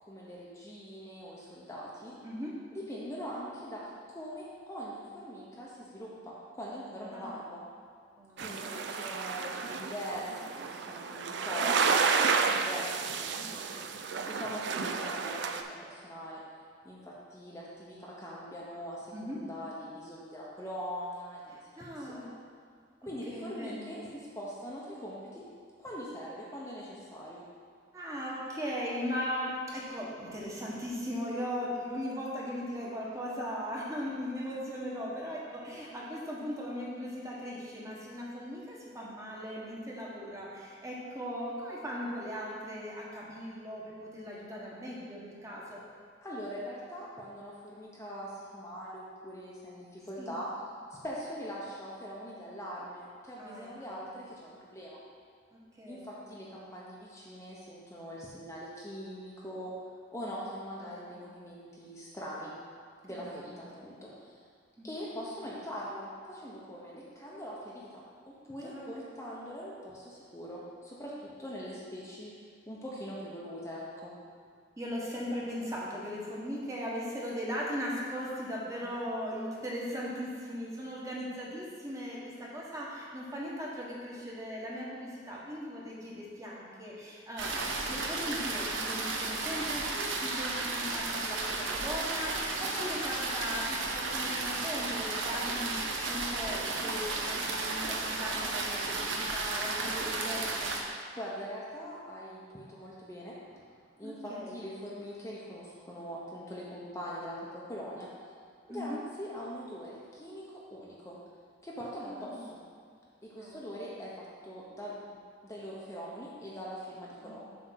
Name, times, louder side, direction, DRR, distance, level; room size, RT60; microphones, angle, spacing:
voice 1, 0.0-2.2 2.7-7.6 8.4-13.6 14.3-16.4 16.8-21.6 22.0-22.4 23.0-25.4 25.8-27.4 46.2-50.5 51.0-55.0 55.9-59.7 60.1-62.5 63.0-64.4 64.8-72.3 72.7-74.2 101.2-103.3 104.0-107.4 107.7-108.1 108.7-111.2 111.6-112.6 113.2-117.4, equal, 15° left, -6 dB, 0.8 m, -42 dB
voice 2, 2.2-2.6 7.1-7.4 8.2-9.2 13.4-13.9 14.7-14.9 19.1-19.4 21.5-22.3 23.3-23.9 27.9-45.8 50.2-50.3 53.4-54.1 55.7-56.1 60.8-61.1 63.1-63.6 64.8-64.9 68.6-69.1 74.8-100.7 104.0-104.6 108.7-109.0 112.1-112.5 113.3-113.7 117.2-117.4, equal, 15° right, -5 dB, 1.2 m, -38 dB
sound 1, 8.4-15.6, right 5 dB, 65° right, 0.4 m, -31 dB
sound 2, 87.4-100.8, right 3 dB, 80° right, 0.9 m, -33 dB
7.6 x 3.5 x 6.3 m, 2.1 s
head